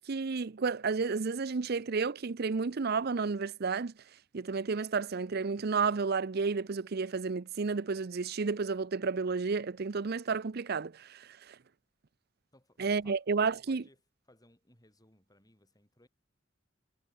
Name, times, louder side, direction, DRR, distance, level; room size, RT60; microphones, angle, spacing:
voice 1, 0.0-3.9 4.3-11.6 12.8-13.8, right 4 dB, 55° right, 0.6 m, -31 dB
voice 2, 12.5-13.2 13.5-14.0 14.3-16.1, left 1 dB, 20° left, 7.9 m, -63 dB
head